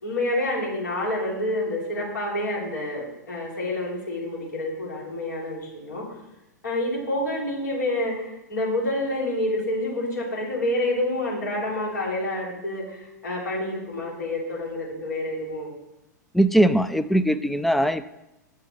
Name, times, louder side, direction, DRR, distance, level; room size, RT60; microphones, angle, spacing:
voice 1, 0.0-6.0 6.6-15.7, left 1 dB, 75° left, -3 dB, 3.2 m, -28 dB
voice 2, 16.3-18.1, right 1 dB, ahead, 13 dB, 0.3 m, -20 dB
8.0 x 5.6 x 5.0 m, 0.93 s
figure-of-eight pair, 100°, 10 cm